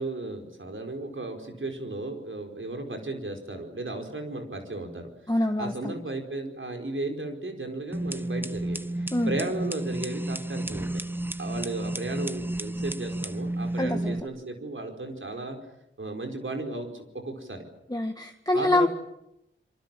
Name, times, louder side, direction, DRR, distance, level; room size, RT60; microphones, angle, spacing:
voice 1, 0.0-5.1 5.6-8.9 9.3-11.0 11.4-15.6 16.0-17.6 18.5-18.9, right 2 dB, 75° right, 3 dB, 4.9 m, -34 dB
voice 2, 5.3-5.9 9.1-9.4 13.8-14.2 17.9-18.9, left 1 dB, 20° left, 3 dB, 1.8 m, -25 dB
sound 1, 7.9-14.2, right 1 dB, 10° right, 1.0 m, -32 dB
26.0 x 24.0 x 7.7 m, 0.84 s
wide cardioid pair, 55°, 20 cm